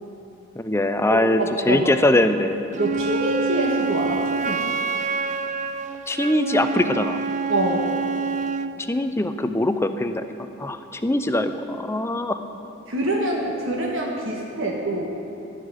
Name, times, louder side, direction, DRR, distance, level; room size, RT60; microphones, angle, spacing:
voice 1, 0.6-2.6 6.1-7.2 8.9-10.2 10.6-12.4, left 1 dB, 10° left, 9 dB, 0.5 m, -22 dB
voice 2, 1.1-1.9 2.8-4.7 7.5-7.9 12.9-15.2, right 1 dB, 65° right, -1 dB, 1.5 m, -25 dB
Wind instrument woodwind instrument, 2.7-8.8, right 4 dB, 35° right, 0.5 m, -27 dB
15.0 x 6.6 x 10.0 m, 2.9 s
head